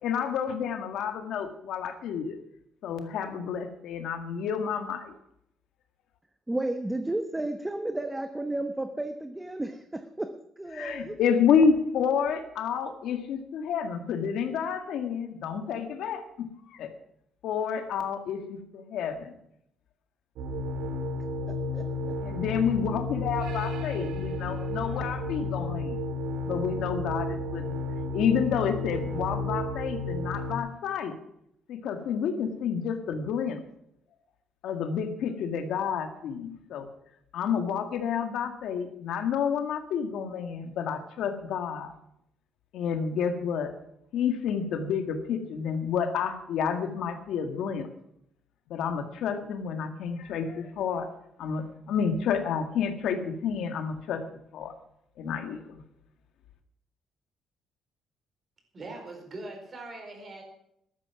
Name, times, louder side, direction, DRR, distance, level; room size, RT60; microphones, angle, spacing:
voice 1, 0.0-2.4 2.8-5.1 10.7-16.9 17.4-19.4 22.2-26.0 26.4-27.8 28.1-31.1 31.7-33.6 34.6-36.9 37.3-41.9 42.7-43.7 44.1-47.9 48.7-51.1 51.4-54.2 54.5-54.7 55.2-55.8, left 7 dB, 65° left, 7 dB, 1.9 m, -29 dB
voice 2, 6.5-11.2 21.5-22.1, right 1 dB, 10° right, 8 dB, 0.9 m, -33 dB
sound 1, 20.4-30.6, left 2 dB, 85° right, 2.6 m, -32 dB
voice 3, 58.7-60.4, right 2 dB, 30° right, 3 dB, 4.6 m, -41 dB
13.5 x 12.5 x 6.0 m, 0.75 s
cardioid pair, 155°, 0 cm